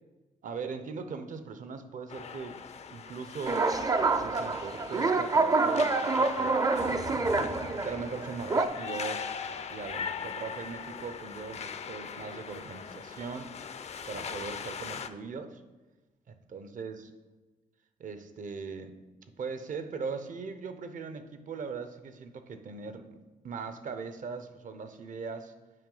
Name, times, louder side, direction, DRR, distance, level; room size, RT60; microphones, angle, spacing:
voice 1, 0.4-2.6 2.9-3.8 4.2-6.6 7.7-9.3 9.7-13.5 14.1-15.6 16.3-17.1 18.0-19.0 19.4-23.2 23.4-25.5, right 5 dB, 60° right, 9 dB, 0.7 m, -40 dB
sound 1, 2.1-15.1, left 6 dB, 45° left, 0.4 m, -40 dB
sound 2, 3.5-8.7, right 3 dB, 25° right, 0.4 m, -27 dB
7.6 x 4.9 x 3.9 m, 1.2 s
cardioid pair, 95°, 15 cm